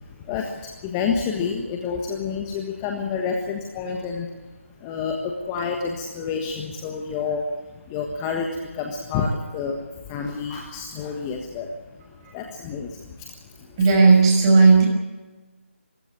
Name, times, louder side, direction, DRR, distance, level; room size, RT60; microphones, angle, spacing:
voice 1, 0.0-4.5 4.8-11.8 12.1-14.0, left 5 dB, 15° left, 2 dB, 1.5 m, -29 dB
voice 2, 13.8-14.9, right 4 dB, 20° right, 1 dB, 5.9 m, -14 dB
24.0 x 15.5 x 8.6 m, 1.2 s
figure-of-eight pair, 160°, 7 cm